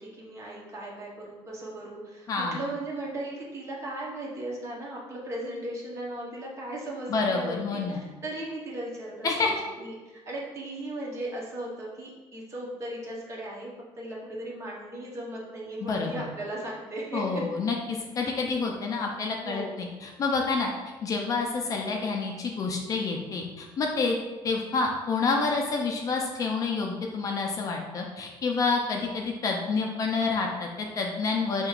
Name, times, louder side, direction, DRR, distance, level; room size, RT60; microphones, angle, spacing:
voice 1, 0.0-13.7 14.0-17.5 19.4-19.8, right 1 dB, 30° right, -3 dB, 0.9 m, -37 dB
voice 2, 2.3-2.6 7.1-8.1 9.2-9.5 15.8-16.3 17.1-20.7 21.0-24.2 24.4-31.7, left 4 dB, 35° left, 1 dB, 0.4 m, -28 dB
6.1 x 2.9 x 2.4 m, 1.2 s
cardioid pair, 175°, 10 cm